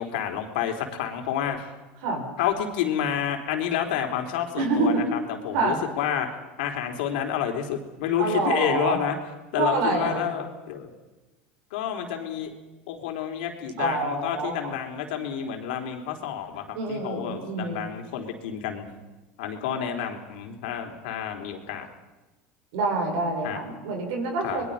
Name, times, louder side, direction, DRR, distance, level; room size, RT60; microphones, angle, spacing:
voice 1, 0.0-1.7 2.4-6.3 6.6-9.2 9.5-10.9 11.7-12.5 12.9-18.9 19.4-21.9 23.4-23.6 24.4-24.7, left 9 dB, 80° left, 4 dB, 3.8 m, -29 dB
voice 2, 4.6-5.0 5.5-5.8 8.2-9.0 9.6-10.3 13.8-14.7 16.7-17.9 22.7-24.7, right 3 dB, 75° right, 1 dB, 7.5 m, -26 dB
26.0 x 21.5 x 5.6 m, 1.1 s
supercardioid pair, 105°, 5 cm